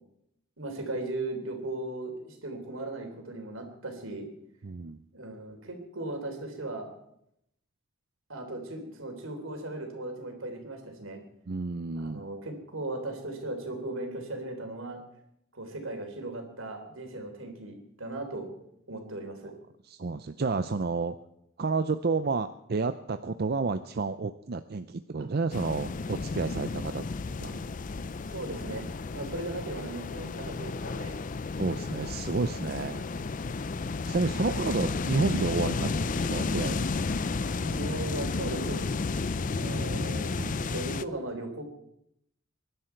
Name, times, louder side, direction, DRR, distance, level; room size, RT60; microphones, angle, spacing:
voice 1, 0.6-4.3 5.1-6.9 8.3-11.2 11.9-15.0 15.5-18.5 18.9-19.5 28.3-28.9 29.1-31.2 34.3-34.6 37.6-38.8 39.5-40.3 40.7-41.6, right 2 dB, 80° right, 4 dB, 3.5 m, -37 dB
voice 2, 4.6-5.0 11.5-12.2 19.9-21.2 21.6-27.0 27.4-27.6 31.6-33.1 34.0-36.9 39.7-40.1 40.4-40.7, right 4 dB, 50° right, 10 dB, 0.5 m, -31 dB
sound 1, 25.5-41.1, left 4 dB, 40° left, 0.5 m, -32 dB
23.5 x 11.5 x 4.6 m, 0.77 s
head